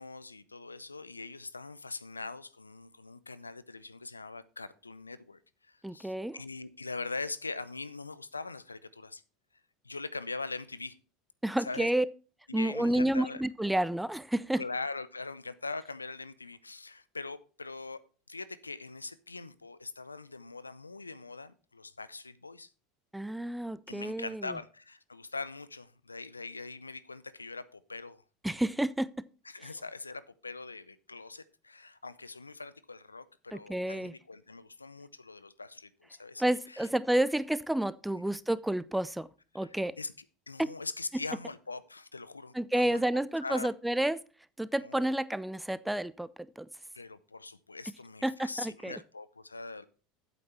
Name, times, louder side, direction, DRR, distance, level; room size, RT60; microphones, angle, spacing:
voice 1, 0.0-9.2 9.8-11.0 11.6-11.9 12.5-13.4 14.5-18.0 18.3-22.7 23.9-28.2 28.5-28.6 29.4-36.9 38.2-38.3 39.5-40.1 40.5-43.7 44.8-45.1 46.9-49.9, left 3 dB, 90° left, 0.5 m, -42 dB
voice 2, 5.8-6.4 11.4-12.0 12.5-14.6 23.1-24.5 28.4-29.1 33.5-34.1 36.4-39.3 39.5-40.0 40.6-40.7 42.5-44.2 44.6-46.3 46.6-46.7 48.2-49.0, right 1 dB, 5° right, 0.6 m, -30 dB
8.5 x 8.3 x 4.3 m
figure-of-eight pair, 75°, 0 cm